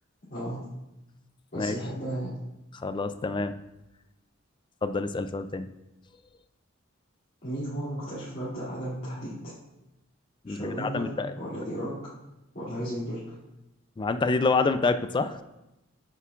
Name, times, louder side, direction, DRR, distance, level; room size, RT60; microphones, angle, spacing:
voice 1, 0.3-0.6 1.5-2.3 7.4-9.5 10.5-11.9 12.5-13.2, right 1 dB, 50° left, -12 dB, 2.6 m, -34 dB
voice 2, 2.8-3.6 4.8-5.7 10.4-11.3 14.0-15.4, left 3 dB, 25° left, 11 dB, 0.3 m, -27 dB
8.9 x 6.9 x 2.4 m, 0.93 s
head